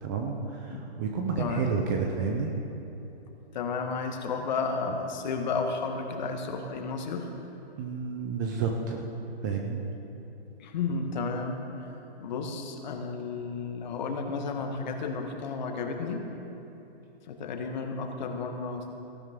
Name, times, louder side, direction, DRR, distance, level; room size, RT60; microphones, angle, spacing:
voice 1, 0.0-2.5 7.8-9.1 9.4-9.8, right 5 dB, 20° right, 2 dB, 0.6 m, -30 dB
voice 2, 1.4-1.7 3.5-7.3 10.6-16.3 17.2-18.9, left 4 dB, 45° left, 4 dB, 1.5 m, -32 dB
18.0 x 13.5 x 3.7 m, 2.9 s
hypercardioid pair, 155°, 32 cm